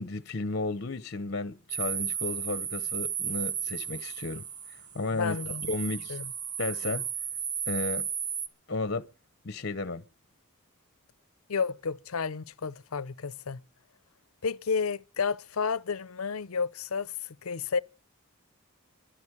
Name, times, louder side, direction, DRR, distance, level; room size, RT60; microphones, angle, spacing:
voice 1, 0.0-4.4 4.9-5.4 5.7-6.2 6.6-7.1 7.7-8.1 8.7-9.1 9.4-10.0, left 3 dB, 50° left, 1.0 m, -33 dB
sound 1, 1.7-8.5, right 8 dB, 80° right, 1.3 m, -34 dB
voice 2, 5.1-5.7 6.1-6.3 11.5-13.6 14.4-17.8, left 5 dB, 80° left, 0.7 m, -31 dB
11.5 x 8.6 x 9.9 m
head